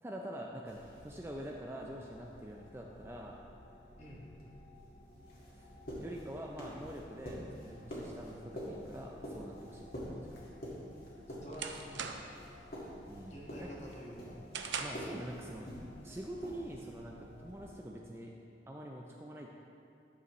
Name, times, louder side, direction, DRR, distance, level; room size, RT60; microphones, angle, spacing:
voice 1, 0.0-3.4 5.5-5.7 6.0-9.9 10.2-10.4 13.1-13.7 14.8-15.7 16.0-18.3 18.7-19.5, right 1 dB, 15° right, -1 dB, 0.4 m, -45 dB
sound 1, 0.7-17.8, left 1 dB, 85° left, 1.1 m, -59 dB
sound 2, 0.7-17.7, equal, 55° left, 1.8 m, -48 dB
sound 3, 10.7-12.5 12.9-13.2 13.6-15.2, right 6 dB, 90° right, 0.5 m, -42 dB
voice 2, 11.4-12.2 13.3-14.4, equal, 40° left, -4 dB, 1.3 m, -48 dB
11.0 x 6.8 x 3.1 m, 2.5 s
head